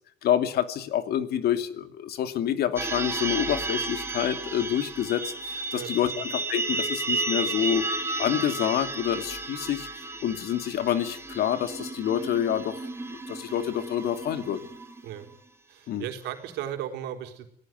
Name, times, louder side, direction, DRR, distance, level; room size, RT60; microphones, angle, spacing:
voice 1, 0.2-7.9 8.2-9.9 10.2-12.8 13.3-14.6 15.9-16.0, left 10 dB, 70° left, 9 dB, 2.7 m, -27 dB
sound 1, 2.8-15.3, right 2 dB, 15° right, 4.6 m, -33 dB
voice 2, 5.7-6.2 15.0-15.3 15.7-17.5, right 11 dB, 85° right, 4 dB, 4.3 m, -36 dB
27.0 x 17.5 x 9.4 m, 0.68 s
cardioid pair, 110°, 17 cm